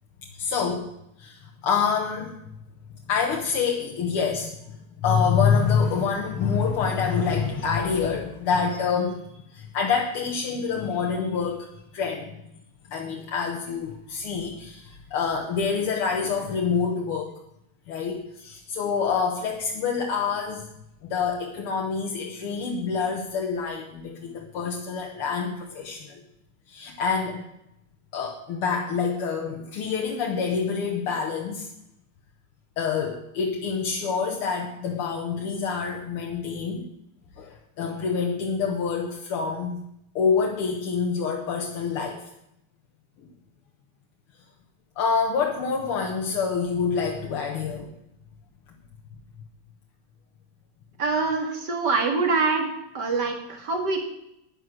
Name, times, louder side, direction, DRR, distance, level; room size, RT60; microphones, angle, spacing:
voice 1, 0.3-0.9 1.2-2.4 3.1-9.2 9.5-11.7 11.9-12.4 12.9-17.3 17.9-20.7 21.0-26.2 26.7-27.4 28.1-31.7 32.8-36.9 37.4-39.8 40.2-42.2 45.0-47.9, left 5 dB, 80° left, 1 dB, 2.1 m, -26 dB
voice 2, 51.0-52.7 52.9-54.0, right 4 dB, 50° right, 3 dB, 2.6 m, -24 dB
11.0 x 9.7 x 6.3 m, 0.82 s
omnidirectional pair, 2.4 m